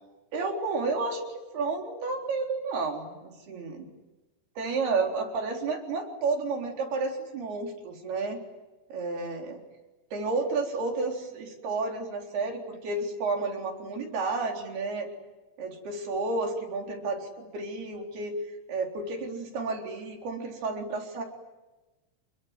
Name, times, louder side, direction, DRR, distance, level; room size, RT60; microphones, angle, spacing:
voice 1, 0.3-3.9 4.6-8.4 8.9-9.6 10.1-15.1 15.6-18.3 18.7-21.2, right 3 dB, 75° right, 2 dB, 5.9 m, -31 dB
28.5 x 21.5 x 9.6 m, 1.1 s
omnidirectional pair, 4.5 m